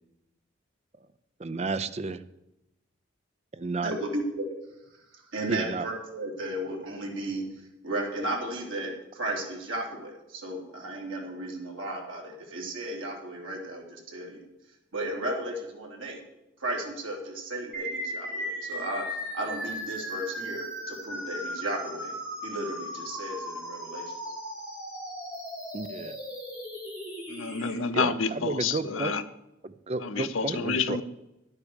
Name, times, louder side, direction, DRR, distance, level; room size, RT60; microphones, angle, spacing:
voice 1, 1.4-2.2 3.5-3.9 5.5-5.9 25.7-26.2 27.9-29.1 29.6-31.0, right 3 dB, 35° right, 13 dB, 0.5 m, -32 dB
voice 2, 3.8-4.5 5.3-7.4 7.8-14.4 14.9-16.2 16.6-19.0 19.3-22.1 22.4-24.1, right 1 dB, 85° right, -1 dB, 3.3 m, -34 dB
sound 1, 17.7-27.7, equal, 5° right, 3.6 m, -37 dB
voice 3, 27.3-29.2 30.0-31.0, left 5 dB, 85° left, 11 dB, 0.8 m, -29 dB
11.0 x 8.2 x 7.1 m, 0.92 s
head